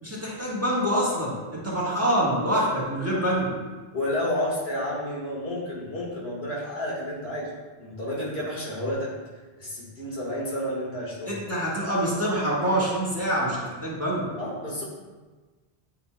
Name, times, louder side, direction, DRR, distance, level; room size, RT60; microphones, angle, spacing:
voice 1, 0.0-3.6 11.3-14.3, equal, 15° right, -7 dB, 1.4 m, -26 dB
voice 2, 3.9-7.5 7.8-9.1 9.6-11.3 14.4-14.8, left 1 dB, 80° left, -5 dB, 1.9 m, -30 dB
9.0 x 5.4 x 2.2 m, 1.3 s
omnidirectional pair, 1.0 m